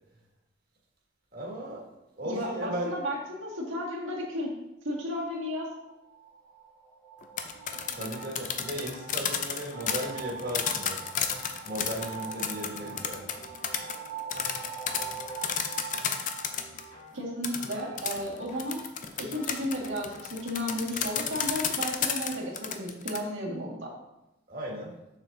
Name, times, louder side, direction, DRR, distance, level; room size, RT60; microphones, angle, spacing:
voice 1, 1.3-1.9 2.1-3.0 7.9-11.0 11.6-13.3 24.5-24.9, equal, 45° right, -3 dB, 1.8 m, -36 dB
voice 2, 2.2-4.5 4.8-5.7 17.1-18.8 19.2-23.9, equal, 75° right, -4 dB, 1.8 m, -33 dB
sound 1, 5.7-17.4, right 7 dB, 10° left, 1.2 m, -44 dB
sound 2, 7.2-16.8 17.4-23.2, left 7 dB, 40° left, 0.4 m, -32 dB
sound 3, 7.5-20.7, left 1 dB, 60° left, 2.1 m, -52 dB
7.0 x 6.3 x 2.7 m, 0.92 s
head